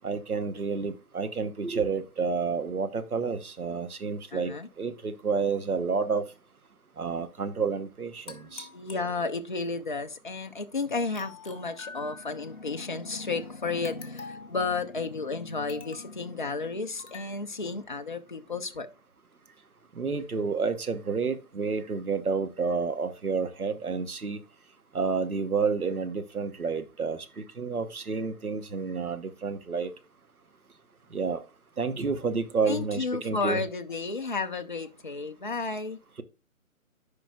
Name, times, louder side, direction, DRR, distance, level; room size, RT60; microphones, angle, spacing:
voice 1, 0.0-6.2 7.0-8.7 19.9-24.4 24.9-29.9 31.1-31.4 31.8-33.6, right 5 dB, 80° right, 1.2 m, -30 dB
voice 2, 4.3-4.7 8.7-18.9 32.7-36.0, left 4 dB, 35° left, 0.4 m, -32 dB
sound 1, 8.3-9.7 11.1-12.6 13.8-14.6 15.7-16.2 17.0-17.3, left 5 dB, 55° left, 1.7 m, -46 dB
10.5 x 5.1 x 2.4 m
figure-of-eight pair, 150°, 43 cm